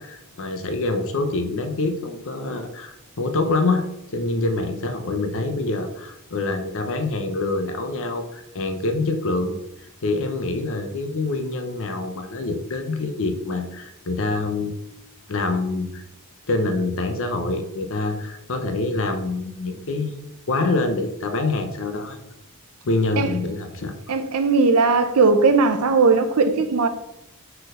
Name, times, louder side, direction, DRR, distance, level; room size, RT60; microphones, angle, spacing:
voice 1, 0.0-3.8 4.1-9.5 10.0-14.7 15.3-16.0 16.5-20.2 20.5-22.2 22.8-24.2, left 2 dB, 60° left, 0.8 m, -25 dB
voice 2, 24.1-26.9, right 4 dB, 75° right, 0.6 m, -18 dB
4.4 x 4.4 x 4.9 m
head